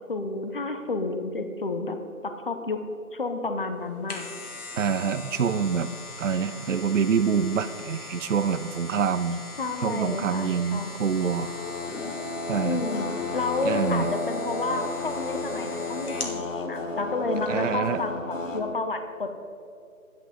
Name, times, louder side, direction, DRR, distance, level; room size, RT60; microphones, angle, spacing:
voice 1, 0.0-2.8 3.1-4.3 9.6-11.0 12.6-19.3, left 3 dB, 40° left, 7 dB, 0.9 m, -30 dB
sound 1, 3.8-16.4 16.8-16.9, left 2 dB, 90° left, 2.4 m, -41 dB
voice 2, 4.8-5.9 6.2-9.4 9.8-11.5 12.5-12.8 13.6-14.1 17.5-18.0, right 6 dB, 60° right, 12 dB, 0.6 m, -26 dB
sound 2, 11.1-18.7, left 3 dB, 60° left, 1.4 m, -32 dB
11.0 x 10.0 x 5.1 m, 2.5 s
figure-of-eight pair, 170°, 43 cm